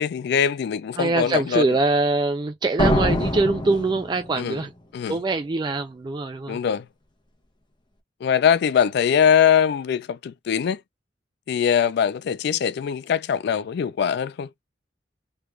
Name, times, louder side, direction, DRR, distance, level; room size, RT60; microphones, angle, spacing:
voice 1, 0.0-1.8 4.4-4.6 4.9-5.2 6.5-6.9 8.2-10.8 11.5-14.5, left 8 dB, 60° left, 0.3 m, -22 dB
voice 2, 1.0-4.7 5.1-6.6, right 3 dB, 25° right, 0.3 m, -23 dB
sound 1, 2.8-4.6, left 1 dB, 25° left, 0.8 m, -24 dB
3.2 x 2.4 x 3.1 m
head